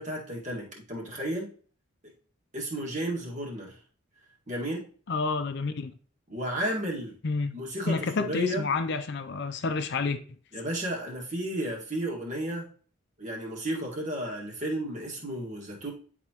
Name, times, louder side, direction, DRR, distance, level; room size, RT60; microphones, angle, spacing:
voice 1, 0.0-1.5 2.5-3.8 4.5-4.8 6.3-7.2 7.5-8.7 10.5-12.7 13.2-15.9, right 1 dB, 35° right, 1.9 m, -33 dB
voice 2, 5.1-5.9 7.2-7.6 7.9-10.2, left 4 dB, 55° left, 0.5 m, -29 dB
10.0 x 4.3 x 2.9 m
head